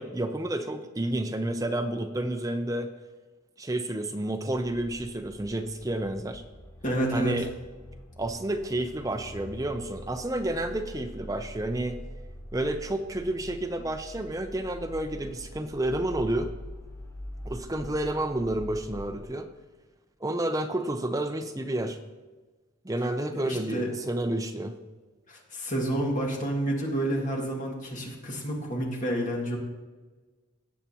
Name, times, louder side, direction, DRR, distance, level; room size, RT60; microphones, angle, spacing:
voice 1, 0.0-2.9 3.6-6.4 7.1-7.5 8.2-12.0 12.5-16.5 17.4-19.5 20.2-22.0 22.8-24.8, right 1 dB, 15° right, 7 dB, 0.5 m, -30 dB
sound 1, 4.5-19.2, equal, 15° left, 0.8 m, -44 dB
voice 2, 6.8-7.5 23.3-23.9 25.3-29.6, right 1 dB, 40° left, -1 dB, 2.1 m, -29 dB
17.5 x 7.4 x 2.9 m, 1.3 s
head